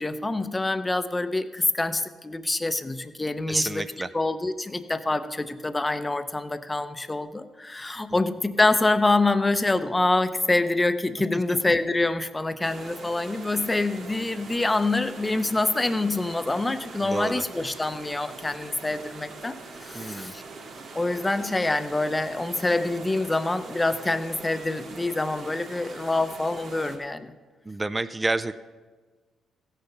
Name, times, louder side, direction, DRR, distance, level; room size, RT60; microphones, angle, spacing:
voice 1, 0.0-3.8 4.1-20.4 21.0-27.3, left 2 dB, 15° left, 11 dB, 0.7 m, -26 dB
voice 2, 3.5-4.1 8.1-8.2 11.3-11.6 17.0-17.4 19.9-20.3 27.7-28.5, right 2 dB, 20° right, 12 dB, 0.4 m, -29 dB
sound 1, 12.6-27.0, right 3 dB, 60° right, 2.2 m, -42 dB
15.5 x 6.7 x 5.7 m, 1.4 s
cardioid pair, 90°, 0 cm